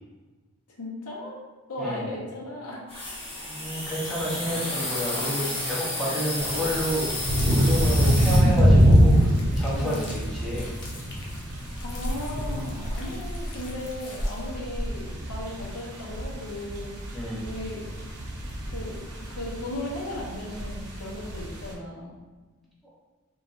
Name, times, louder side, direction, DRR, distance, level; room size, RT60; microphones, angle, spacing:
voice 1, 0.8-1.4 1.7-2.8 6.0-6.3 9.8-10.0 11.8-17.0 17.4-17.9 18.7-19.0 19.3-22.1, left 1 dB, 85° left, -2 dB, 0.7 m, -36 dB
sound 1, 2.9-8.4, left 1 dB, 25° left, 0.9 m, -31 dB
voice 2, 3.4-10.7 17.1-17.4, equal, ahead, -8 dB, 0.6 m, -30 dB
sound 2, 6.4-21.7, equal, 80° right, 0.6 m, -25 dB
sound 3, 6.7-14.5, equal, 50° left, 0.5 m, -38 dB
3.0 x 2.3 x 2.4 m, 1.3 s
head